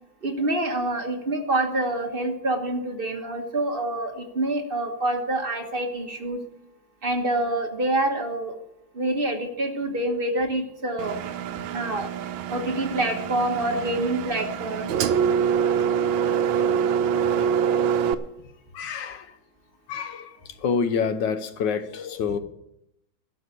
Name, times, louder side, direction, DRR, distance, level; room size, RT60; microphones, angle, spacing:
voice 1, 0.2-6.4 7.0-8.5 8.9-11.2 11.7-12.1 12.5-14.9, right 1 dB, 30° right, 1.4 m, -26 dB
Engine, 11.0-18.1, right 7 dB, 80° right, 1.4 m, -25 dB
voice 2, 18.7-19.3 19.9-20.3 20.6-22.4, left 6 dB, 70° left, 1.5 m, -27 dB
12.5 x 6.4 x 8.4 m
omnidirectional pair, 2.2 m